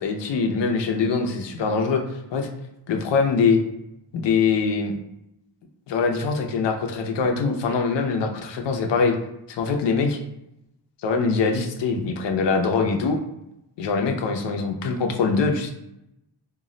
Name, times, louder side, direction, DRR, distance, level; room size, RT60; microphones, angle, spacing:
voice 1, 0.0-2.0 2.3-2.5 2.9-3.6 4.1-5.0 5.9-9.1 9.5-10.2 11.0-13.2 13.8-15.7, left 5 dB, 80° left, 3 dB, 0.6 m, -23 dB
2.3 x 2.0 x 3.7 m, 0.85 s
wide cardioid pair, 120°, 42 cm